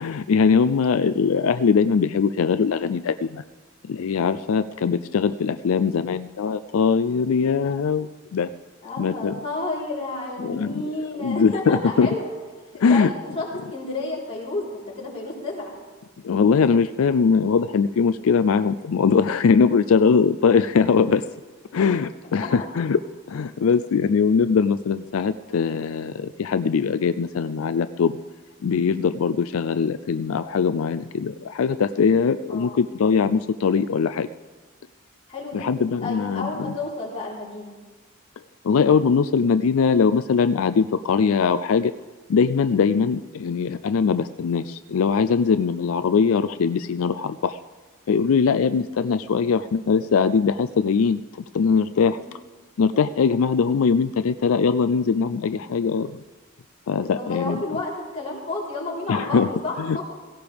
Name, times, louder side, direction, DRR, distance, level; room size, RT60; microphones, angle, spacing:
voice 1, 0.0-3.4 3.9-8.5 9.0-9.4 10.4-10.9 11.2-12.1 12.8-13.1 16.2-21.2 21.7-23.0 23.3-28.2 28.6-34.3 35.5-36.7 38.6-41.9 42.3-47.6 48.1-51.2 51.5-52.2 52.8-56.2 56.9-57.6 59.1-59.5 59.8-60.2, left 5 dB, 85° left, 11 dB, 0.4 m, -21 dB
voice 2, 8.8-12.3 12.9-13.4 13.7-14.6 15.0-15.8 20.0-20.1 22.4-22.6 32.5-32.9 35.3-35.7 36.0-37.7 52.2-52.3 57.1-60.0, left 2 dB, 30° left, -6 dB, 4.1 m, -31 dB
17.0 x 16.5 x 3.5 m, 1.3 s
head